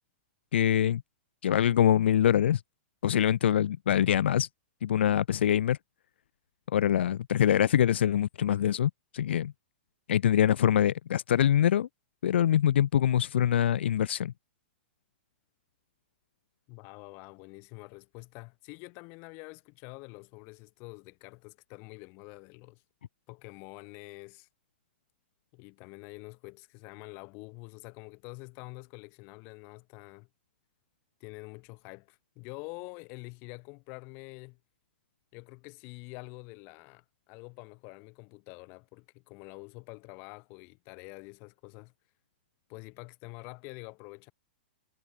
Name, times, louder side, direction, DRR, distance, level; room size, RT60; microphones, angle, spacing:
voice 1, 0.5-1.0 1.4-2.6 3.0-4.5 4.8-5.8 6.7-9.5 10.1-11.9 12.2-14.3, left 10 dB, 75° left, 0.7 m, -24 dB
voice 2, 16.7-22.8 23.3-24.5 25.5-30.3 31.2-34.6 35.3-41.9 42.7-44.3, left 30 dB, 35° left, 3.4 m, -47 dB
hypercardioid pair, 150°, 6 cm